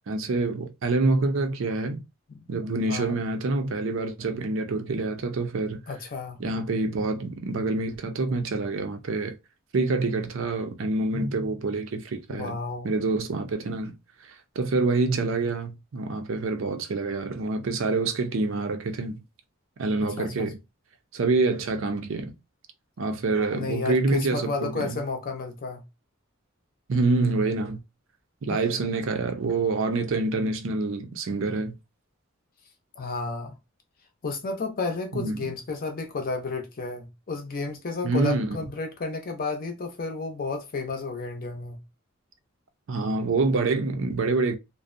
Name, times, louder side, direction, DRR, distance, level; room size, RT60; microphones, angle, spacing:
voice 1, 0.1-2.0 2.5-5.8 6.4-9.3 9.7-12.6 12.8-14.0 14.2-19.2 19.8-20.6 21.1-22.3 23.0-25.0 26.9-27.8 28.4-31.7 35.1-35.5 38.0-38.6 42.9-44.6, right 3 dB, 65° right, 0.5 m, -26 dB
voice 2, 5.9-6.4 12.3-12.9 20.2-20.5 23.5-25.8 28.5-28.6 33.0-33.5 34.2-41.8, left 3 dB, 45° left, 0.6 m, -32 dB
2.5 x 2.1 x 2.5 m
head